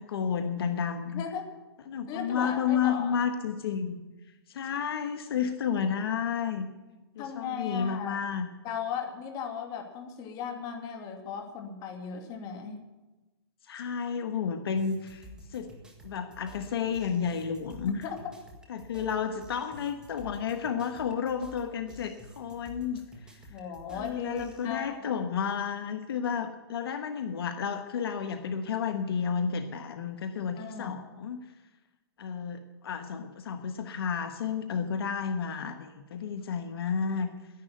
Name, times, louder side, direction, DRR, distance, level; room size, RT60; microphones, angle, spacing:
voice 1, 0.0-1.2 1.9-4.0 4.5-6.7 7.1-8.5 13.7-15.7 16.0-18.1 18.7-23.4 23.9-31.4 32.2-37.3, left 7 dB, 65° left, 7 dB, 1.4 m, -31 dB
voice 2, 1.1-1.5 2.1-3.2 7.2-8.2 8.6-12.8 18.0-18.2 23.5-25.2 30.6-31.0, left 7 dB, 30° left, 4 dB, 2.3 m, -37 dB
sound 1, 14.8-24.7, equal, 5° right, 1.7 m, -51 dB
11.5 x 11.0 x 9.3 m, 1.1 s
hypercardioid pair, 145°, 13 cm